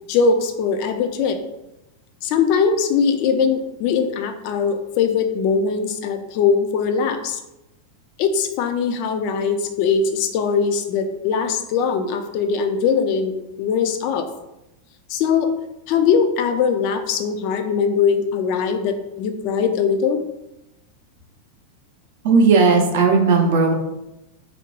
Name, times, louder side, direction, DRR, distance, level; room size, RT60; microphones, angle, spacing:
voice 1, 0.1-1.4 2.2-7.4 8.2-14.3 15.1-15.5 15.9-20.2, left 6 dB, 45° left, 7 dB, 0.3 m, -21 dB
voice 2, 22.2-23.7, right 4 dB, 55° right, 2 dB, 0.5 m, -15 dB
2.8 x 2.1 x 4.1 m, 0.92 s
figure-of-eight pair, 90°, 0 cm